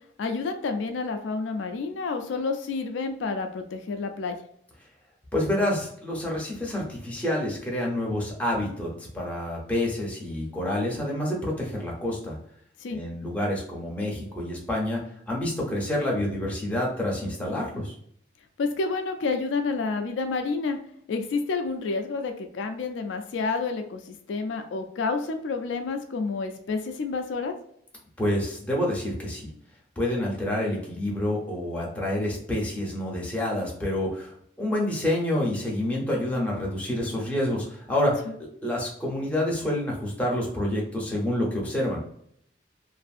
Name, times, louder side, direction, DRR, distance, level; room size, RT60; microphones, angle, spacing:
voice 1, 0.2-4.4 12.8-13.0 18.6-20.8 21.1-27.5 38.3-38.4, left 4 dB, 75° left, 6 dB, 0.4 m, -29 dB
voice 2, 5.3-8.9 9.1-12.4 12.9-15.0 15.3-17.9 28.2-29.5 30.0-42.0, left 1 dB, 10° left, -3 dB, 0.7 m, -28 dB
2.6 x 2.5 x 2.4 m, 0.69 s
head